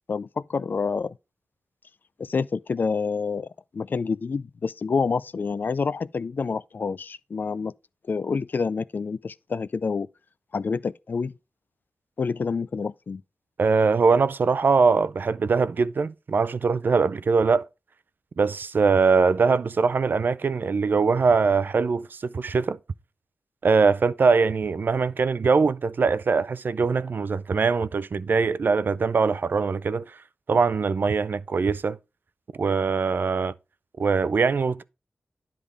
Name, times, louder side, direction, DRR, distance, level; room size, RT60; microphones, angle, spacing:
voice 1, 0.1-1.1 2.2-3.5 3.7-7.7 8.1-10.1 10.5-11.3 12.2-13.2, left 5 dB, 55° left, 0.4 m, -28 dB
voice 2, 13.6-17.7 18.4-22.8 23.6-30.2 30.5-32.0 32.5-33.5 34.0-34.8, right 4 dB, 60° right, 0.4 m, -22 dB
10.0 x 3.6 x 4.8 m
wide cardioid pair, 80°, 4 cm